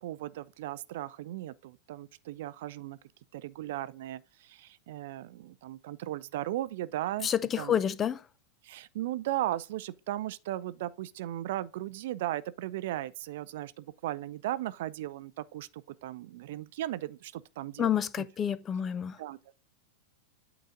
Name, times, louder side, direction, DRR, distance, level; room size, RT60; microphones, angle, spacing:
voice 1, 0.0-3.0 3.3-7.3 7.6-7.8 8.6-18.0 19.2-19.5, right 14 dB, 55° right, 0.4 m, -36 dB
voice 2, 7.2-8.2 17.8-19.2, left 9 dB, 25° left, 0.4 m, -29 dB
8.6 x 3.9 x 3.7 m
figure-of-eight pair, 90°, 0 cm